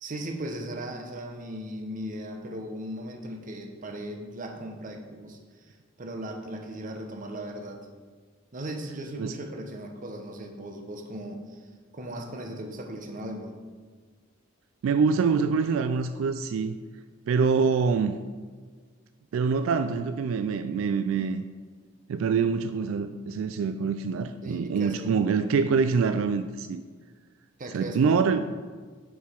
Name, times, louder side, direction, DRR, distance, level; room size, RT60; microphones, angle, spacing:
voice 1, 0.0-5.7 6.0-7.9 8.5-11.7 11.9-13.5 24.4-25.5 27.6-28.4, right 1 dB, 40° right, 4 dB, 0.8 m, -37 dB
voice 2, 14.8-16.8 17.3-18.2 19.3-21.4 22.1-26.8 27.7-28.4, right 5 dB, 80° right, 10 dB, 0.3 m, -25 dB
6.9 x 4.7 x 4.5 m, 1.5 s
head